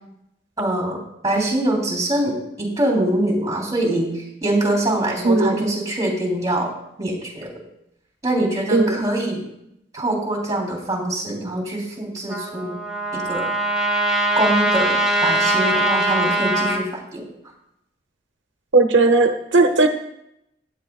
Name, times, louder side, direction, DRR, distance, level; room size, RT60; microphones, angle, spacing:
voice 1, 0.6-6.7 7.0-7.5 8.2-9.4 9.9-12.8 13.1-13.5 14.3-17.2, right 1 dB, 20° right, 0 dB, 3.4 m, -24 dB
voice 2, 5.2-5.7 8.7-9.1 18.7-19.9, right 3 dB, 90° right, 6 dB, 0.8 m, -17 dB
Trumpet, 12.3-16.8, right 1 dB, 5° right, 1.6 m, -21 dB
17.5 x 9.7 x 2.4 m, 0.79 s
head